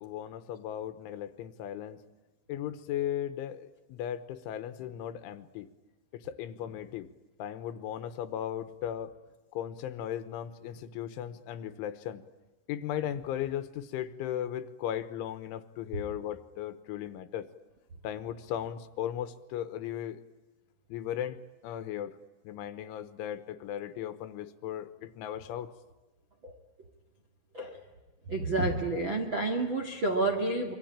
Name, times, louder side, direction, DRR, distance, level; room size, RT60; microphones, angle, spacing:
voice 1, 0.0-2.0 2.5-5.7 6.1-7.1 7.4-9.1 9.5-12.2 12.7-17.5 18.0-20.2 20.9-22.2 22.4-25.7, left 10 dB, 75° left, 12 dB, 3.2 m, -37 dB
voice 2, 28.3-30.7, right 2 dB, 45° right, 2 dB, 1.5 m, -29 dB
26.5 x 24.5 x 8.8 m, 1.2 s
omnidirectional pair, 6.0 m